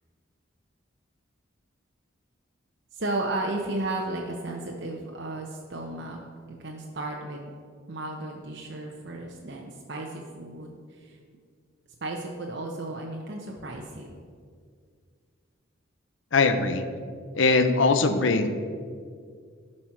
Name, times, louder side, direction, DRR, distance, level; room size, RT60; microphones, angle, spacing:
voice 1, 2.9-6.2 6.6-7.5 7.9-11.2 12.0-14.1, right 2 dB, 55° right, 0 dB, 0.7 m, -34 dB
voice 2, 16.3-16.9 17.3-18.5, left 3 dB, 75° left, 9 dB, 0.6 m, -21 dB
11.0 x 4.3 x 5.8 m, 2.1 s
head